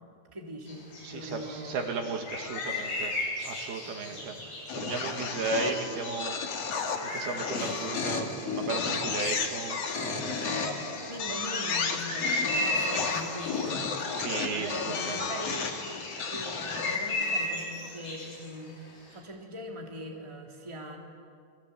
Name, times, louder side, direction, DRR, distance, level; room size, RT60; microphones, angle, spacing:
voice 1, 0.3-1.9 3.8-4.4 11.1-15.7 16.3-21.0, equal, 10° right, 0 dB, 2.6 m, -42 dB
sound 1, 0.7-19.2, left 2 dB, 65° left, 9.8 m, -37 dB
voice 2, 1.0-3.1 3.4-4.3 4.8-6.4 7.1-10.8 11.3-11.4 14.1-15.2, right 5 dB, 70° right, 4 dB, 3.7 m, -35 dB
sound 2, 2.4-3.1 4.7-17.6, left 5 dB, 45° left, 2.6 m, -33 dB
29.0 x 24.5 x 8.4 m, 2.3 s
omnidirectional pair, 4.7 m